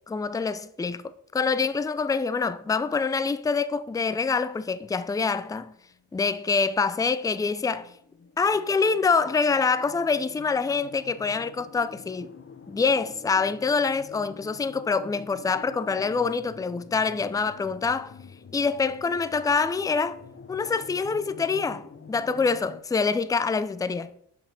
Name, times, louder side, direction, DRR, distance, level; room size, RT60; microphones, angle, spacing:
voice 1, 0.1-5.7 6.1-7.9 8.4-12.3 12.7-18.1 18.5-20.2 20.5-24.1, left 4 dB, 10° left, 0.4 m, -25 dB
sound 1, 5.9-22.8, left 5 dB, 25° left, 0.8 m, -47 dB
5.8 x 4.9 x 5.1 m
supercardioid pair, 45°, 47 cm